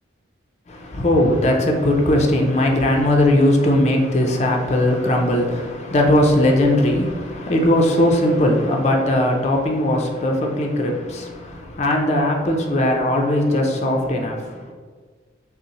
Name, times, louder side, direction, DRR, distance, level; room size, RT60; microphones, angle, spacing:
voice 1, 0.7-14.7, left 1 dB, 35° left, 0.5 m, -19 dB
5.2 x 2.0 x 2.9 m
head